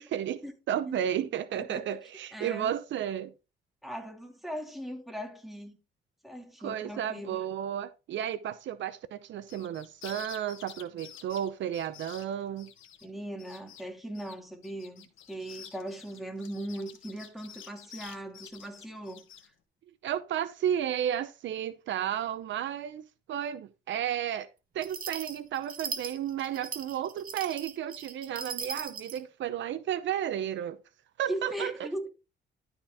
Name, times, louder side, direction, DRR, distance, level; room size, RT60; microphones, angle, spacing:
voice 1, 0.0-3.3 6.6-12.7 20.0-24.5 24.7-30.8 31.2-31.9, right 10 dB, 70° right, 0.7 m, -33 dB
voice 2, 0.9-1.3 1.7-2.0 2.3-2.7 3.8-5.8 6.2-7.4 13.0-19.2 31.3-32.1, right 1 dB, ahead, 2.4 m, -39 dB
sound 1, 9.4-13.1 13.4-13.8 14.1-19.5, left 9 dB, 80° left, 1.5 m, -49 dB
sound 2, 24.8-29.2, right 5 dB, 45° right, 1.4 m, -39 dB
12.5 x 4.4 x 3.6 m
cardioid pair, 90°, 20 cm